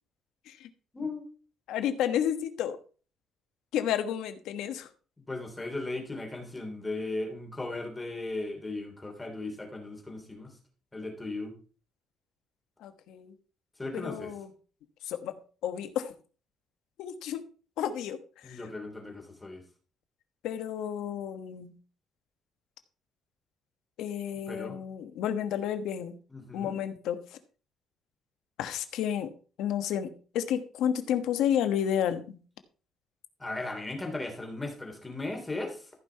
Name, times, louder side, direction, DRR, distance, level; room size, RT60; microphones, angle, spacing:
voice 1, 0.9-1.3 5.3-10.5 10.9-11.5 13.8-14.3 18.4-19.6 24.5-24.8 26.3-26.8 33.4-35.9, left 2 dB, 15° left, 3 dB, 3.1 m, -37 dB
voice 2, 1.7-2.8 3.7-4.9 12.8-13.3 13.9-14.5 15.0-15.3 15.6-16.1 17.0-17.4 17.8-18.2 18.4-18.6 20.4-21.7 24.0-26.2 26.5-27.2 28.6-29.3 29.6-32.4, left 9 dB, 85° left, 10 dB, 1.2 m, -31 dB
14.5 x 5.7 x 4.6 m, 0.38 s
cardioid pair, 130°, 0 cm